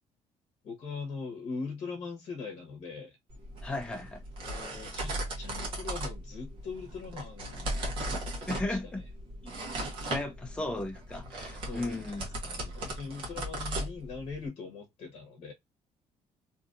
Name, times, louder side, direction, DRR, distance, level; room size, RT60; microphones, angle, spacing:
voice 1, 0.6-3.2 4.4-7.8 8.6-8.9 10.0-10.3 11.7-15.5, left 4 dB, 50° left, 1.0 m, -41 dB
sound 1, 3.3-14.5, right 1 dB, 45° right, 1.0 m, -37 dB
voice 2, 3.6-4.2 8.5-9.0 10.1-12.2, left 2 dB, 10° left, 0.6 m, -35 dB
2.7 x 2.5 x 2.5 m
cardioid pair, 175°, 12 cm